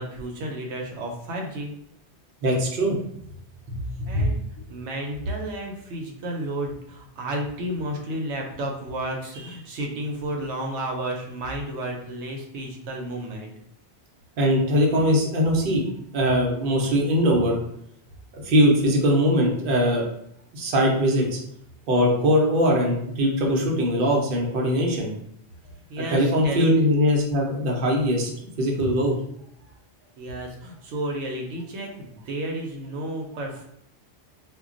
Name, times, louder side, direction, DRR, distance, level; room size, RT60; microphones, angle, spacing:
voice 1, 0.0-1.8 4.1-4.4 4.7-13.5 25.9-26.7 29.6-29.7 30.2-33.6, right 1 dB, 85° right, 1 dB, 0.9 m, -32 dB
voice 2, 2.4-3.0 3.7-4.3 14.4-15.8 16.1-17.6 18.3-20.0 20.5-21.4 21.9-25.1 26.1-28.3 28.6-29.1, equal, 55° right, -1 dB, 0.8 m, -21 dB
2.2 x 2.2 x 3.7 m, 0.71 s
omnidirectional pair, 1.2 m